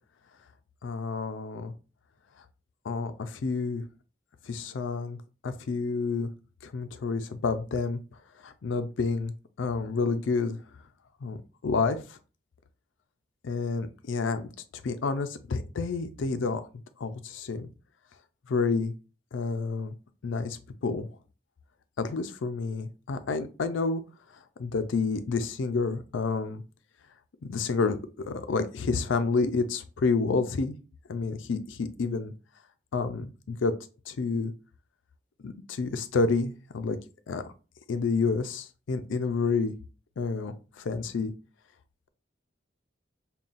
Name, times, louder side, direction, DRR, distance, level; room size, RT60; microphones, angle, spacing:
voice 1, 0.8-1.7 2.8-3.8 4.5-5.2 5.4-6.3 6.6-8.0 8.4-9.3 9.6-10.6 11.2-11.4 11.6-12.2 13.4-14.5 14.8-16.7 17.0-17.7 18.5-18.9 19.3-19.9 20.2-21.1 22.0-24.0 24.6-26.6 27.4-28.0 28.3-30.7 31.1-32.3 32.9-33.7 34.1-34.5 35.4-37.0 37.3-37.4 37.9-39.7 40.2-41.3, left 4 dB, 80° left, 10 dB, 0.4 m, -29 dB
5.3 x 2.3 x 2.5 m, 0.34 s
head